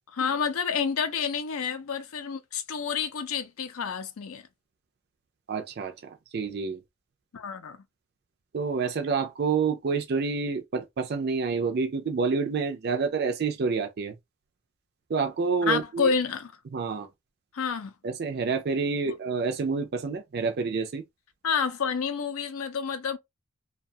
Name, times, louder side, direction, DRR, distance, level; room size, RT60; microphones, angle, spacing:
voice 1, 0.1-4.4 7.3-7.8 15.7-16.5 17.5-17.9 19.1-19.2 21.4-23.2, left 6 dB, 75° left, 0.5 m, -29 dB
voice 2, 5.5-6.8 8.5-14.1 15.1-16.1 16.7-17.1 18.0-21.0, right 5 dB, 45° right, 0.4 m, -28 dB
2.3 x 2.3 x 2.6 m
head